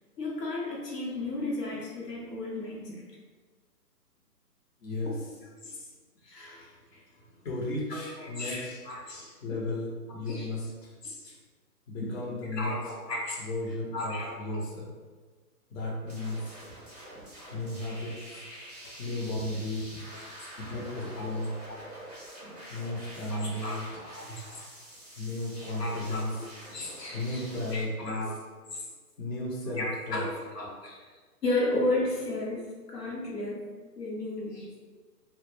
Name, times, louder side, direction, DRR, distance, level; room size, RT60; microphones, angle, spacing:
voice 1, 0.2-3.0 5.6-5.9 6.2-7.0 7.9-9.6 10.3-10.5 11.0-11.4 12.5-13.4 13.9-14.6 18.5-18.6 20.1-20.2 21.7-21.8 23.3-23.8 24.1-24.6 25.8-27.4 27.7-28.3 28.7-28.8 29.8-31.1 31.4-32.6 32.9-33.7 34.0-34.7, left 2 dB, 90° left, -3 dB, 0.9 m, -34 dB
voice 2, 4.8-5.2 7.4-8.8 9.4-10.9 11.9-12.8 13.4-14.9 15.7-16.6 17.5-18.5 19.0-20.0 20.7-21.6 22.7-23.8 25.2-26.4 27.1-28.3 29.2-30.2, left 1 dB, 55° left, -4 dB, 0.7 m, -34 dB
sound 1, 16.1-27.8, right 1 dB, 30° right, 0.4 m, -46 dB
2.1 x 2.0 x 3.1 m, 1.4 s
hypercardioid pair, 145°, 47 cm